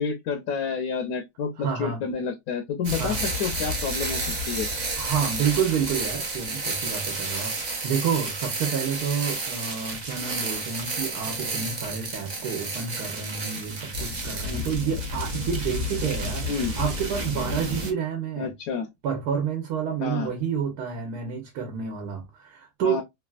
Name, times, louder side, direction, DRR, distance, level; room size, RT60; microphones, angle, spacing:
voice 1, 0.0-4.7 14.4-14.7 16.5-16.8 18.4-18.9 20.0-20.3 22.8-23.0, left 6 dB, 70° left, 1.0 m, -29 dB
voice 2, 1.6-2.0 2.9-3.2 4.9-18.5 19.0-23.0, right 7 dB, 80° right, 1.3 m, -29 dB
sound 1, 2.8-17.9, right 1 dB, 45° right, 0.6 m, -31 dB
3.3 x 2.3 x 2.3 m
omnidirectional pair, 1.7 m